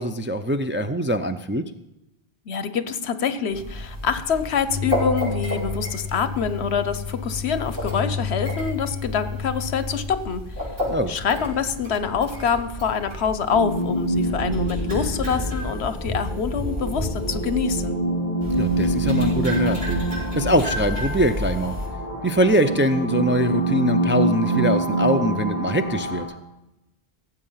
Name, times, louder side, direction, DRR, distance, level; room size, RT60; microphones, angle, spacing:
voice 1, 0.0-1.6 10.9-11.1 18.6-20.0 20.3-21.8 22.2-26.3, equal, 15° right, 6 dB, 0.4 m, -23 dB
voice 2, 2.5-10.7 11.1-18.0, left 6 dB, 80° left, 12 dB, 1.1 m, -25 dB
sound 1, 3.5-17.8 18.4-21.9, left 2 dB, 60° right, 7.0 m, -30 dB
sound 2, 13.5-26.2, right 1 dB, 40° right, 4.5 m, -26 dB
17.5 x 7.9 x 5.7 m, 0.91 s
omnidirectional pair, 1.1 m